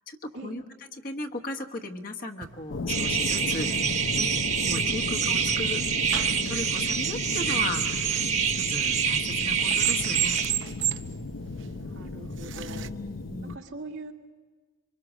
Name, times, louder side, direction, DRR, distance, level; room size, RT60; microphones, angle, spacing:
voice 1, 0.1-0.6 1.0-4.3 4.6-5.8 6.2-8.2 8.4-10.4 12.7-13.6, left 2 dB, 45° left, 3 dB, 1.3 m, -36 dB
sound 1, 2.4-12.9, right 12 dB, 65° right, 0.7 m, -37 dB
sound 2, 2.7-13.6, left 3 dB, 70° left, 0.8 m, -35 dB
sound 3, 2.9-10.5, right 7 dB, 35° right, 1.2 m, -27 dB
voice 2, 11.7-13.0 13.4-14.1, right 2 dB, 85° right, -1 dB, 2.1 m, -42 dB
25.0 x 24.0 x 6.3 m, 1.4 s
head